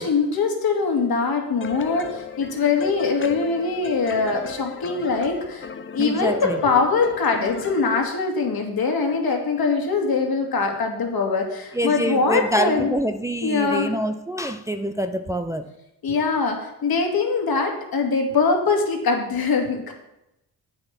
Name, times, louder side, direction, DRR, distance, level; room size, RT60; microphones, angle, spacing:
voice 1, 0.0-5.7 5.9-12.9 13.4-13.9 16.0-19.9, left 4 dB, 60° left, 2 dB, 2.1 m, -22 dB
sound 1, 1.6-8.0, left 6 dB, 30° left, 0.8 m, -36 dB
voice 2, 6.0-6.6 11.7-15.7, right 1 dB, 5° right, 6 dB, 0.5 m, -26 dB
8.0 x 6.7 x 5.8 m, 0.89 s
supercardioid pair, 65°, 42 cm